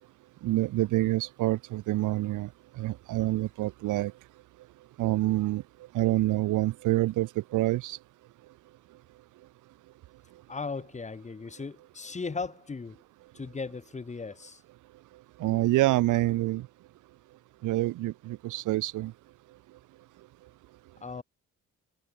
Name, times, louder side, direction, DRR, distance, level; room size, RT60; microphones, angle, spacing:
voice 1, 0.4-2.5 2.8-4.1 5.0-5.6 5.9-8.0 15.4-16.7 17.6-19.1, right 17 dB, 85° right, 0.8 m, -27 dB
voice 2, 10.5-13.0 13.3-14.6 21.0-21.2, left 4 dB, 25° left, 1.3 m, -37 dB
cardioid pair, 90°, 30 cm